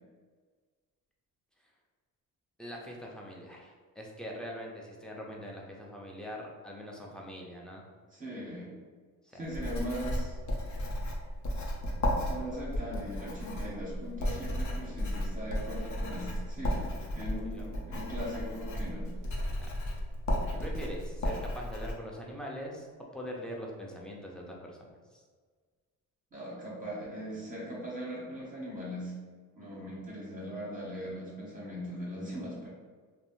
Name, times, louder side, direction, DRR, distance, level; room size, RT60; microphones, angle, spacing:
voice 1, 2.6-7.8 9.3-9.5 17.2-17.8 19.6-19.7 20.5-22.9 23.1-24.9 25.1-25.2 29.6-30.0, equal, ahead, -2 dB, 0.4 m, -43 dB
voice 2, 8.1-8.7 9.3-10.3 12.3-16.9 17.1-19.1 26.3-29.1 29.5-32.7, equal, 25° right, -6 dB, 0.7 m, -39 dB
Writing, 9.5-21.9, left 1 dB, 55° left, 0.6 m, -34 dB
2.5 x 2.0 x 2.9 m, 1.5 s
cardioid pair, 95°, 34 cm